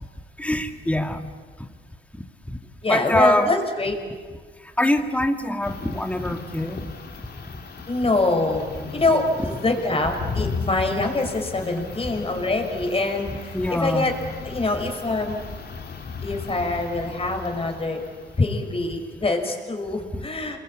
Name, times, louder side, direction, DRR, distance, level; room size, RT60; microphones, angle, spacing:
voice 1, 0.4-1.2 2.5-2.6 2.9-3.5 4.8-6.9 13.5-14.1, left 1 dB, 5° left, 6 dB, 2.0 m, -23 dB
voice 2, 2.8-4.0 7.9-14.2 14.4-15.4 16.2-18.0 18.4-20.6, left 2 dB, 30° left, 5 dB, 5.3 m, -24 dB
sound 1, 5.6-18.8, left 5 dB, 50° left, 2.7 m, -36 dB
28.5 x 22.0 x 8.8 m, 1.5 s
cardioid pair, 90°, 20 cm